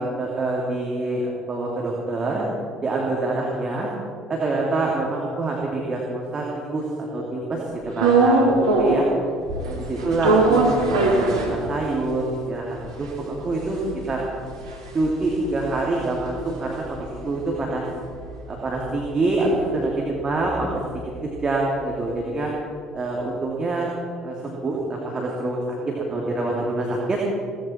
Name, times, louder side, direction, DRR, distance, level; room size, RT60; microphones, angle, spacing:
voice 1, 0.0-2.5 2.8-3.9 4.3-9.1 9.6-13.8 14.1-14.2 14.9-17.8 18.5-20.7 21.2-22.5 22.9-23.9 24.2-25.8 26.1-27.2, right 2 dB, 30° right, -3 dB, 2.9 m, -26 dB
sound 1, 8.0-9.2 9.5-12.1 12.5-12.6 12.7-17.2 17.6-21.6, right 2 dB, 80° right, 1.9 m, -23 dB
18.0 x 14.5 x 4.5 m, 2.3 s
figure-of-eight pair, 55°, 3 cm